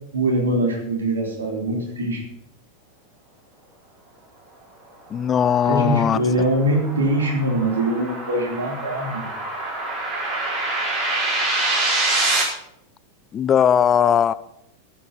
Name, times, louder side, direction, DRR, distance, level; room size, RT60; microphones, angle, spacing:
voice 1, 0.1-2.2 5.7-9.3, right 1 dB, 70° right, 1 dB, 3.6 m, -22 dB
voice 2, 5.1-6.2 13.3-14.3, left 8 dB, 25° left, 17 dB, 0.5 m, -18 dB
sound 1, 5.6-12.4, right 2 dB, 25° right, 6.5 m, -25 dB
13.5 x 8.5 x 5.9 m, 0.79 s
figure-of-eight pair, 90°, 0 cm